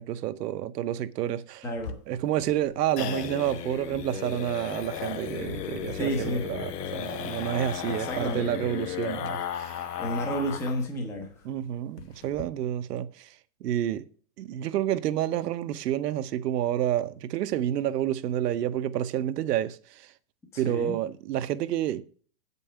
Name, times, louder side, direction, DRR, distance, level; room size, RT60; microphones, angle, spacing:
voice 1, 0.0-1.6 2.1-9.9 11.4-13.4 13.6-14.0 14.4-20.1 20.6-22.0, right 11 dB, 80° right, 0.9 m, -29 dB
voice 2, 1.6-2.0 6.0-6.5 7.9-8.7 10.0-11.5 20.5-21.0, equal, 5° left, 0.7 m, -31 dB
sound 1, 1.8-10.9 11.2-11.3 11.6-11.7 12.0-12.4, left 9 dB, 75° left, 1.2 m, -35 dB
8.4 x 5.5 x 6.8 m
supercardioid pair, 165°, 47 cm